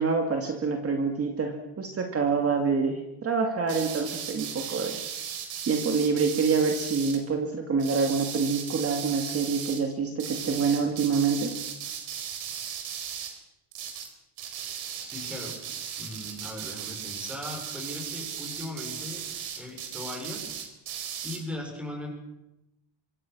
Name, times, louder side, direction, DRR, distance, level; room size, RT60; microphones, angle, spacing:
voice 1, 0.0-5.0 5.7-11.5, right 5 dB, 30° right, 4 dB, 2.4 m, -26 dB
sound 1, 3.7-7.2 7.8-9.8 10.2-13.4 13.7-14.1 14.4-21.4, right 8 dB, 70° right, 4.4 m, -37 dB
voice 2, 15.0-15.6 16.0-19.2 19.6-20.6 21.2-22.1, left 1 dB, ahead, 1 dB, 6.8 m, -38 dB
25.5 x 25.5 x 6.2 m, 0.91 s
cardioid pair, 175°, 49 cm